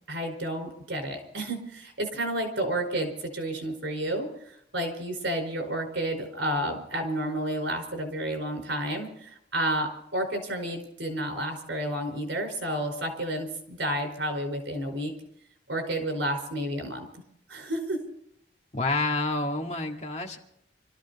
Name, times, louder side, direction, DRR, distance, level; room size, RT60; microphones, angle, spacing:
voice 1, 0.1-15.1 15.7-17.1 17.5-18.0, right 1 dB, 80° right, 4 dB, 4.8 m, -31 dB
voice 2, 18.7-20.4, left 2 dB, 35° left, 2 dB, 1.9 m, -28 dB
25.5 x 13.5 x 4.1 m, 0.72 s
head